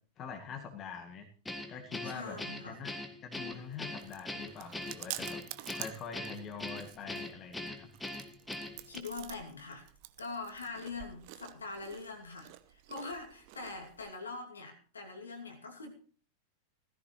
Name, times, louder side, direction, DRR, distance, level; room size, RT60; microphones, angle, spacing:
voice 1, 0.2-1.3 1.7-2.4 2.7-2.9 3.2-5.4 5.7-7.9, left 6 dB, 30° left, 4 dB, 1.9 m, -44 dB
Guitar, 1.5-9.0, left 1 dB, 5° left, 1.5 m, -41 dB
voice 2, 2.0-2.8 8.8-9.9 10.2-15.9, left 3 dB, 75° left, 3 dB, 2.7 m, -43 dB
Chewing mastication, 3.4-14.1, right 16 dB, 45° right, 0.8 m, -49 dB
16.5 x 14.5 x 3.2 m, 0.40 s
figure-of-eight pair, 90°, 0 cm